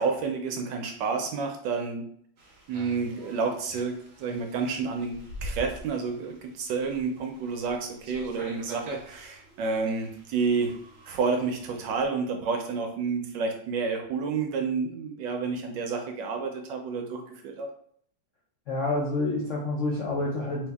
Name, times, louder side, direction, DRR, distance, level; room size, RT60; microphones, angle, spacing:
voice 1, 0.0-2.1 2.7-10.8 11.1-17.7, right 4 dB, 75° right, 4 dB, 1.1 m, -30 dB
sound 1, 2.4-12.0, right 1 dB, 55° right, 0.7 m, -45 dB
voice 2, 18.7-20.7, left 2 dB, 70° left, -3 dB, 0.7 m, -28 dB
3.2 x 2.7 x 3.4 m, 0.63 s
omnidirectional pair, 2.2 m